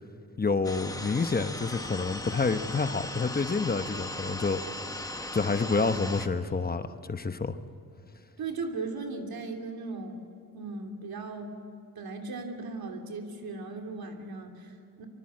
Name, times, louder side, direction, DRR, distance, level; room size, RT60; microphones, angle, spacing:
voice 1, 0.4-4.6 5.3-7.6, left 4 dB, 25° left, 9 dB, 0.9 m, -28 dB
sound 1, 0.6-6.3, left 1 dB, 10° left, 1.2 m, -38 dB
voice 2, 8.4-10.2 10.5-11.6 11.9-15.0, right 3 dB, 90° right, 3 dB, 3.2 m, -37 dB
25.5 x 24.5 x 7.6 m, 2.7 s
wide cardioid pair, 155°, 35 cm